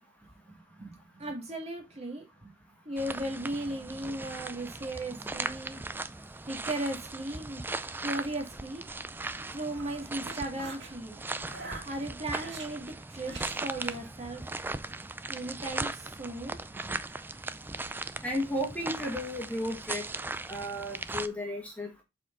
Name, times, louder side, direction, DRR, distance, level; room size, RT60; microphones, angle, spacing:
voice 1, 0.8-2.5 2.8-5.8 6.5-7.6 8.0-8.8 9.5-11.2 11.9-14.4 15.3-17.0, right 1 dB, 35° right, 2 dB, 2.1 m, -37 dB
sound 1, 3.0-21.3, right 3 dB, 10° right, 0.3 m, -38 dB
sound 2, 9.3-10.9 11.4-12.7 13.2-14.0, right 3 dB, 65° right, 2.4 m, -45 dB
voice 2, 18.2-20.0 20.5-22.0, equal, 5° left, 0 dB, 1.8 m, -34 dB
7.5 x 4.3 x 3.7 m, 0.22 s
head